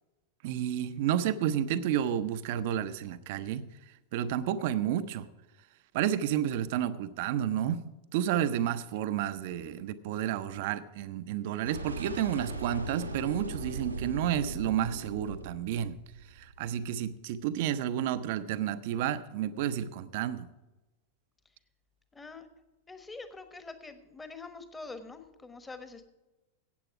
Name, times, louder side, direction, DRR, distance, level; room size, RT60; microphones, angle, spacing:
voice 1, 0.4-3.7 4.1-5.3 5.9-7.8 8.1-16.0 16.4-20.5, right 10 dB, 50° right, 13 dB, 0.7 m, -31 dB
sound 1, 11.6-16.8, right 2 dB, 85° right, 1.3 m, -39 dB
voice 2, 22.1-22.5 22.9-26.1, left 3 dB, 10° left, 10 dB, 1.3 m, -45 dB
15.5 x 8.6 x 4.8 m, 1.1 s
figure-of-eight pair, 90°, 0 cm